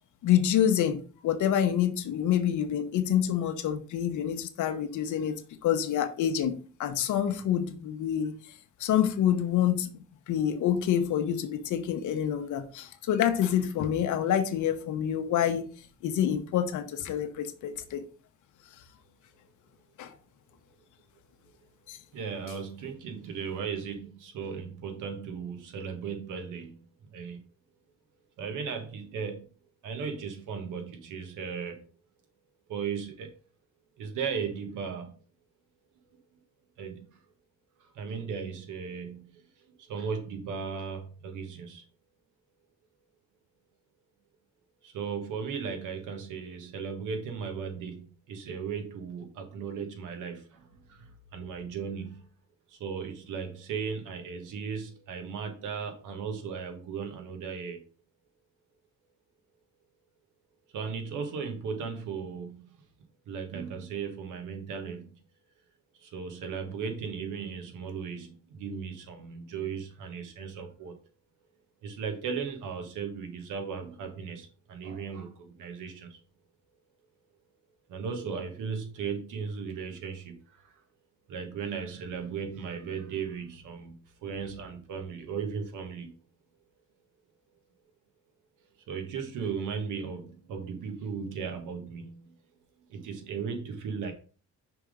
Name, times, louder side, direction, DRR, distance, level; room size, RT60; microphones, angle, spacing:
voice 1, 0.2-8.3 8.8-15.7 16.0-18.0 20.0-20.1 21.9-22.0, left 10 dB, 80° left, 1.0 m, -27 dB
voice 2, 22.1-26.8 27.1-27.4 28.4-29.5 29.8-31.9 32.7-33.3 34.0-35.1 36.8-37.2 37.8-41.8 44.8-52.2 52.7-57.8 60.7-62.8 63.3-65.2 65.9-71.0 71.8-76.2 77.9-80.8 81.3-86.2 88.9-92.3 92.9-94.1, right 6 dB, 85° right, 1.4 m, -36 dB
5.8 x 3.6 x 5.0 m
cardioid pair, 90°, 30 cm